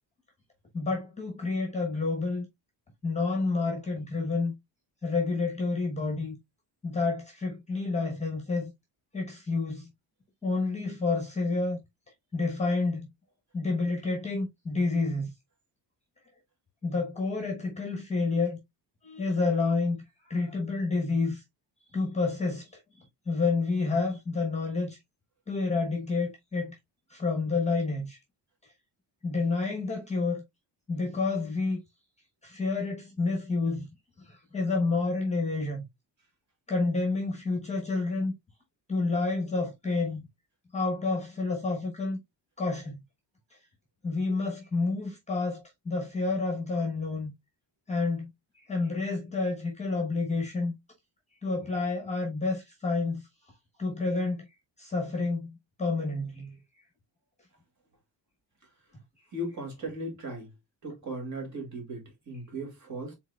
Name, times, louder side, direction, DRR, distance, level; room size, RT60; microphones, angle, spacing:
voice 1, 0.7-2.5 3.0-4.5 5.0-6.4 6.8-8.7 9.1-9.9 10.4-11.8 12.3-13.1 13.5-15.3 16.8-18.6 19.0-20.0 20.3-21.4 21.9-25.0 25.5-26.8 27.1-28.2 29.2-30.4 30.9-31.8 32.4-33.9 34.2-35.8 36.7-38.3 38.9-40.2 40.7-42.2 42.6-43.0 43.5-43.6 44.0-47.3 47.9-48.3 48.5-50.7 51.4-53.2 53.8-54.5 54.8-56.5, left 3 dB, 15° left, 1.0 m, -29 dB
voice 2, 59.3-60.5 60.8-63.1, right 1 dB, 40° right, 2.4 m, -37 dB
4.6 x 3.8 x 2.3 m
cardioid pair, 175°, 45 cm